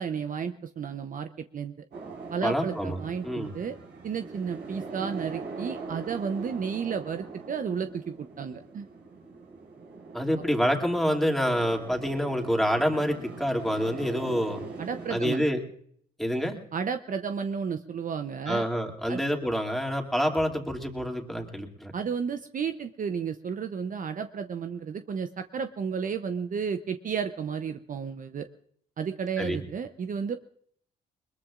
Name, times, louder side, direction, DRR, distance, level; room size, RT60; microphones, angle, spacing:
voice 1, 0.0-1.7 2.3-3.8 4.0-8.9 14.8-15.4 16.7-18.6 19.1-19.2 21.9-28.5 29.0-30.4, right 6 dB, 45° right, 8 dB, 0.8 m, -32 dB
sound 1, 1.9-15.3, right 4 dB, 70° right, 4.8 m, -42 dB
voice 2, 2.4-3.5 10.1-14.6 15.1-15.6 16.2-16.6 18.5-21.9 29.4-29.6, equal, ahead, 2 dB, 2.6 m, -27 dB
21.5 x 21.0 x 2.5 m, 0.64 s
supercardioid pair, 65°, 18 cm